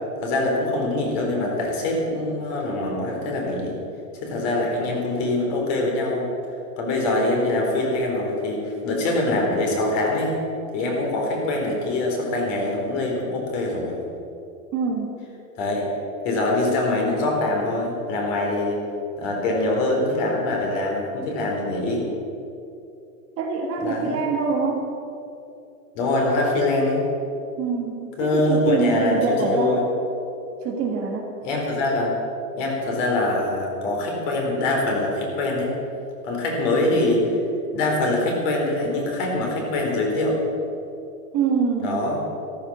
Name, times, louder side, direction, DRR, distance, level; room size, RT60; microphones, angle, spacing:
voice 1, 0.2-3.7 4.1-6.3 6.8-10.3 10.7-14.0 15.6-15.9 16.2-18.8 19.2-22.1 23.8-24.2 25.9-27.0 28.2-29.8 31.4-32.1 32.6-35.7 36.2-37.4 37.7-40.4 41.8-42.2, left 2 dB, 40° left, 0 dB, 4.0 m, -24 dB
voice 2, 14.7-15.1 23.4-24.9 27.6-29.8 30.6-31.3 41.3-42.1, right 5 dB, 30° right, 1 dB, 1.6 m, -24 dB
14.0 x 13.0 x 6.2 m, 2.8 s
hypercardioid pair, 150°, 47 cm